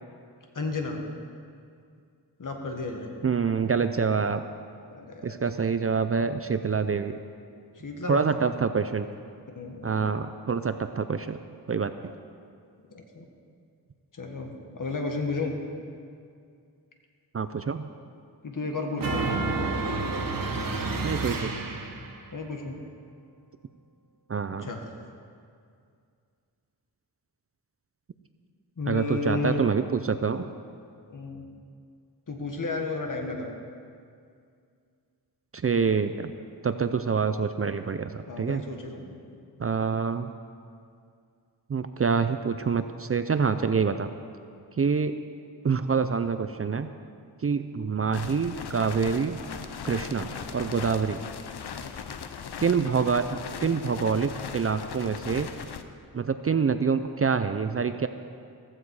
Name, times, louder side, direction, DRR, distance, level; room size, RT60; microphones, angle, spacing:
voice 1, 0.5-1.0 2.4-3.1 4.9-5.3 7.7-8.4 9.5-9.9 12.9-13.3 14.1-15.5 18.4-19.3 22.3-22.8 24.6-25.1 28.8-29.6 31.1-31.4 32.3-33.6 38.3-39.2 52.4-52.5, left 3 dB, 50° left, 2 dB, 1.7 m, -33 dB
voice 2, 3.2-4.4 5.2-7.2 8.1-9.1 9.8-11.4 11.7-11.9 17.3-17.9 21.0-21.5 24.3-24.7 28.9-30.5 35.5-36.3 36.6-38.6 39.6-40.3 41.7-44.1 44.8-45.1 45.6-46.9 47.4-49.4 49.8-51.2 52.6-55.5 56.1-58.1, right 5 dB, 35° right, 10 dB, 0.4 m, -26 dB
sound 1, 19.0-22.2, right 3 dB, 55° right, 1.2 m, -29 dB
sound 2, 48.1-55.8, left 7 dB, 80° left, 0.8 m, -39 dB
15.0 x 15.0 x 4.8 m, 2.3 s
wide cardioid pair, 160°, 39 cm